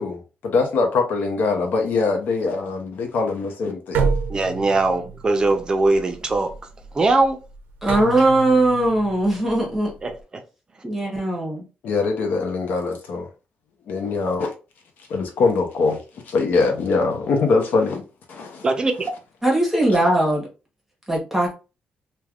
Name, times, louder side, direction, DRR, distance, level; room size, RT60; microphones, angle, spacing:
voice 1, 0.0-4.1 11.8-13.3 13.9-14.5 15.1-16.0 16.3-18.0 18.3-18.7, left 4 dB, 70° left, 0.7 m, -22 dB
sound 1, 3.9-10.2, right 5 dB, 85° right, 0.5 m, -29 dB
voice 2, 4.3-6.5 6.9-7.4 10.0-10.4 18.6-19.0, right 2 dB, 25° right, 0.5 m, -21 dB
voice 3, 7.8-9.9 10.8-11.6 19.4-20.5 21.1-21.5, right 1 dB, 5° right, 0.9 m, -19 dB
3.3 x 2.2 x 2.3 m
cardioid pair, 145°, 3 cm